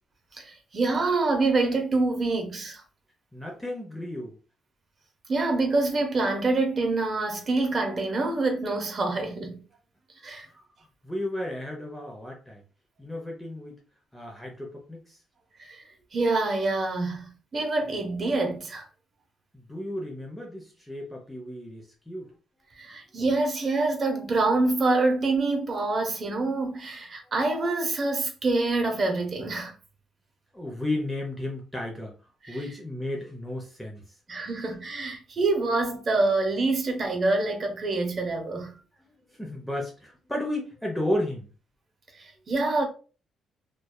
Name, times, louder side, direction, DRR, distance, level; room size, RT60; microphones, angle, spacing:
voice 1, 0.3-2.8 5.3-9.5 10.2-10.5 15.6-15.8 16.1-18.9 22.8-29.7 32.4-32.6 34.3-38.7 42.2-42.9, right 3 dB, 40° right, 0.7 m, -26 dB
voice 2, 3.3-4.4 11.0-12.6 13.0-13.8 14.1-15.2 19.5-22.3 30.5-32.2 32.5-34.1 39.3-41.5, left 1 dB, 5° left, 0.6 m, -33 dB
2.6 x 2.3 x 2.2 m
cardioid pair, 90°, 0 cm